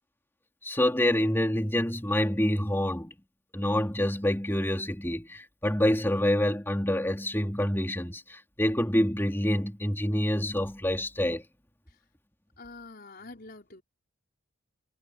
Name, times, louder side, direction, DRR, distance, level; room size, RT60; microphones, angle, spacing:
voice 1, 0.6-3.1 3.5-11.4, left 1 dB, 10° left, 3.2 m, -27 dB
voice 2, 12.6-13.8, left 3 dB, 50° left, 4.9 m, -46 dB
head